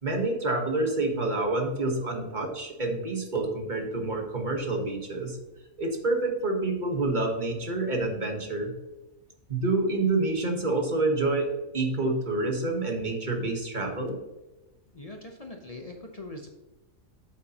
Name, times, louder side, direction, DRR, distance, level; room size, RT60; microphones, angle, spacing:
voice 1, 0.0-5.4 5.8-8.7 9.5-14.2, right 2 dB, 35° right, 2 dB, 1.3 m, -28 dB
voice 2, 14.9-16.5, left 2 dB, 35° left, 2 dB, 0.7 m, -42 dB
8.3 x 7.5 x 2.9 m, 1.0 s
omnidirectional pair, 1.5 m